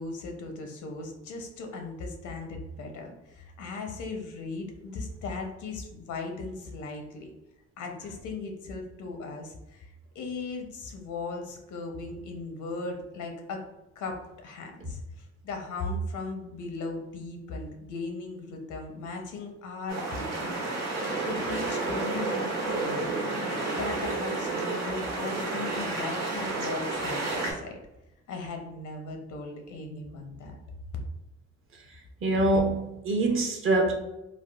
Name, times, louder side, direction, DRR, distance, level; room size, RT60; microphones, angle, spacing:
voice 1, 0.0-7.3 7.8-13.6 14.0-20.9 21.2-23.2 23.8-27.8 28.3-30.6, left 3 dB, 80° left, 3 dB, 0.7 m, -38 dB
sound 1, 19.9-27.5, right 3 dB, 60° right, 1.1 m, -31 dB
voice 2, 32.2-33.9, right 2 dB, 45° right, 2 dB, 0.6 m, -24 dB
3.4 x 2.1 x 2.3 m, 0.92 s
cardioid pair, 90°, 30 cm